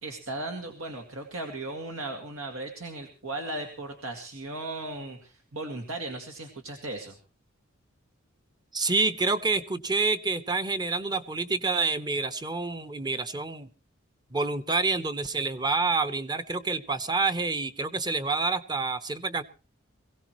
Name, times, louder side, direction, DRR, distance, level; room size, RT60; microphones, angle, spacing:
voice 1, 0.0-7.2, right 2 dB, 85° right, 4 dB, 2.1 m, -36 dB
voice 2, 8.7-13.7 14.3-19.4, right 3 dB, 20° right, 11 dB, 0.8 m, -28 dB
22.5 x 17.0 x 3.1 m, 0.34 s
head